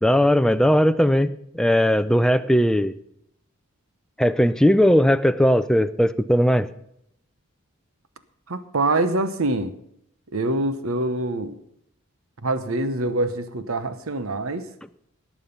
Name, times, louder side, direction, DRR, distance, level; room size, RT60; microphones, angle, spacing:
voice 1, 0.0-2.9 4.2-6.7, equal, 5° left, 11 dB, 0.4 m, -18 dB
voice 2, 8.5-9.7 10.3-11.5 12.4-14.7, right 2 dB, 75° right, 12 dB, 1.0 m, -25 dB
18.5 x 7.4 x 5.4 m, 0.75 s
head